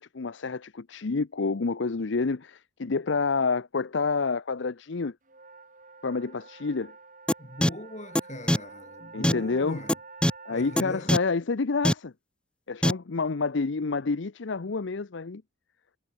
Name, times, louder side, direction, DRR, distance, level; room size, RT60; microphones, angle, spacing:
voice 1, 0.0-5.1 6.0-6.9 9.1-9.8 10.5-12.1 12.7-15.4, left 4 dB, 65° left, 0.6 m, -28 dB
sound 1, 5.2-10.9, right 4 dB, 40° right, 5.2 m, -48 dB
sound 2, 7.3-7.4 7.6-7.7 8.1-8.2 8.5-8.6 9.2-9.3 9.9-10.0 10.2-10.3 10.8-10.9 11.1-11.2 11.8-11.9 12.8-12.9, left 1 dB, 5° left, 0.7 m, -21 dB
voice 2, 7.4-10.0 10.5-11.1, left 1 dB, 35° left, 4.5 m, -39 dB
head